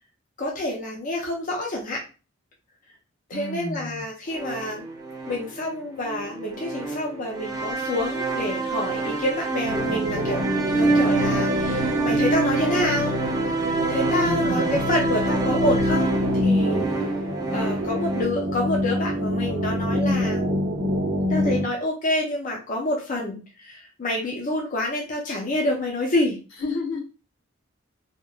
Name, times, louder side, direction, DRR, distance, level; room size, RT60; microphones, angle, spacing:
voice 1, 0.4-2.0 3.3-4.9 5.3-13.1 13.8-16.9 17.5-20.4 21.3-26.4, left 1 dB, 40° left, -1 dB, 0.5 m, -28 dB
voice 2, 3.3-4.0 14.2-14.8 26.6-27.0, left 1 dB, 85° left, -3 dB, 1.0 m, -30 dB
sound 1, 4.3-18.2, right 3 dB, 20° right, 0.4 m, -27 dB
sound 2, 9.6-21.6, left 1 dB, 55° right, 0.7 m, -26 dB
2.9 x 2.1 x 2.3 m, 0.33 s
head